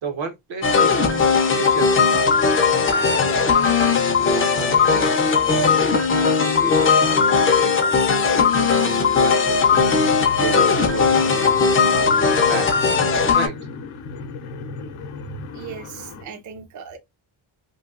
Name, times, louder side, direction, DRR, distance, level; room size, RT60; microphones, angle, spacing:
voice 1, 0.0-2.2 2.8-3.9 4.2-9.7 10.4-12.8 13.3-13.6, right 5 dB, 70° right, 0.9 m, -33 dB
sound 1, 0.6-13.5, left 5 dB, 30° left, 0.4 m, -18 dB
sound 2, 9.7-16.2, left 4 dB, 85° left, 0.7 m, -34 dB
voice 2, 15.5-17.0, right 7 dB, 40° right, 0.4 m, -38 dB
3.0 x 2.6 x 2.3 m
wide cardioid pair, 175°, 48 cm